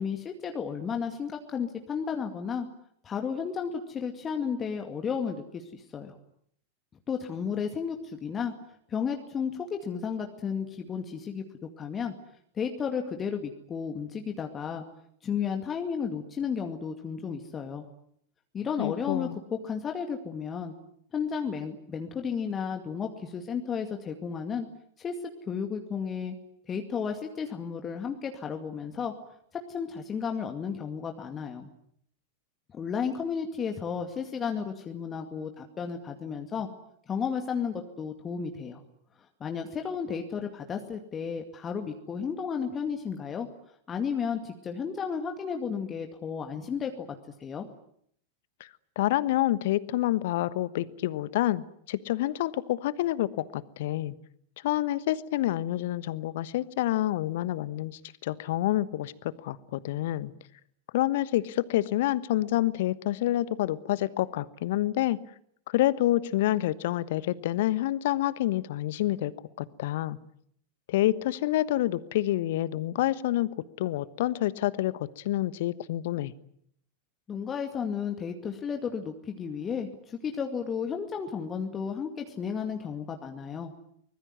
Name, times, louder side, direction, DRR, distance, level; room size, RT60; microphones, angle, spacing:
voice 1, 0.0-2.7 3.0-6.2 7.1-8.5 8.9-11.4 11.8-12.1 12.6-14.8 15.2-17.8 18.5-20.7 21.1-24.7 25.0-25.1 25.5-26.4 26.7-29.1 29.5-31.7 32.7-36.7 37.1-38.8 39.4-43.5 43.9-47.1 47.4-47.7 77.3-83.7, left 6 dB, 25° left, 4 dB, 2.3 m, -33 dB
voice 2, 18.8-19.4 48.6-48.7 49.0-54.1 54.6-60.3 60.9-65.2 65.7-69.3 69.6-70.2 70.9-73.5 73.8-76.3, left 14 dB, 55° left, 17 dB, 1.2 m, -28 dB
24.5 x 21.0 x 9.4 m, 0.69 s
figure-of-eight pair, 90°, 0 cm